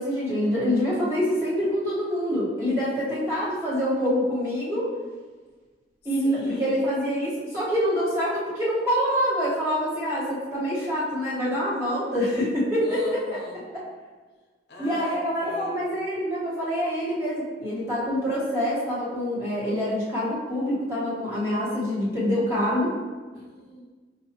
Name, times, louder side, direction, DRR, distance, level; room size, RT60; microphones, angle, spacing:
voice 1, 0.0-4.9 6.0-13.2 13.7-13.8 14.8-22.9, equal, 15° right, -10 dB, 1.3 m, -26 dB
voice 2, 6.2-6.7 12.8-13.6 14.7-15.9 23.3-23.9, left 1 dB, 60° left, -2 dB, 0.7 m, -39 dB
5.6 x 2.6 x 2.9 m, 1.4 s
head